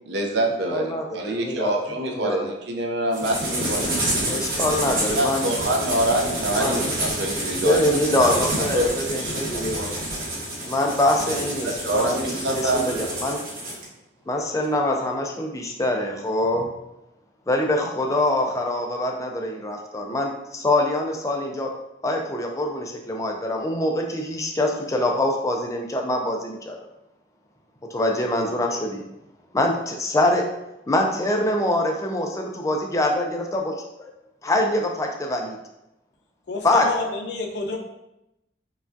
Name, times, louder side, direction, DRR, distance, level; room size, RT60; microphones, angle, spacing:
voice 1, 0.1-3.9 5.1-10.2 11.6-12.8, right 1 dB, 75° right, 1 dB, 0.6 m, -26 dB
voice 2, 0.7-1.7 2.1-2.4 4.2-5.5 6.5-6.8 7.6-9.9 10.6-12.2 12.5-13.4 14.3-16.7 17.5-21.7 22.0-26.8 27.9-29.0 29.5-30.4 30.9-33.7 34.4-35.6 36.6-36.8, left 1 dB, 20° left, 1 dB, 0.4 m, -24 dB
sound 1, 3.1-13.8, right 1 dB, 55° right, 1.2 m, -28 dB
voice 3, 36.5-37.8, left 3 dB, 70° left, 2 dB, 0.5 m, -29 dB
4.7 x 2.3 x 2.6 m, 0.88 s
head